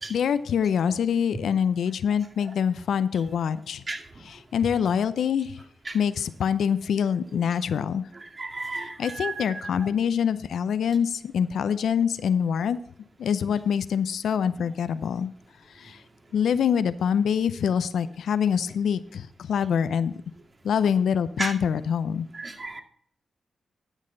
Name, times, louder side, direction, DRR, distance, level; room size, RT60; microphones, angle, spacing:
voice 1, 0.1-3.8 4.2-5.5 5.9-8.0 9.0-12.8 13.2-15.3 15.8-15.9 16.3-20.1 20.6-22.3, left 7 dB, 80° left, 13 dB, 0.5 m, -25 dB
voice 2, 8.4-9.7 21.4-21.5 22.3-22.8, right 3 dB, 40° right, 3 dB, 2.2 m, -33 dB
12.0 x 6.5 x 3.8 m, 0.63 s
supercardioid pair, 50°, 0 cm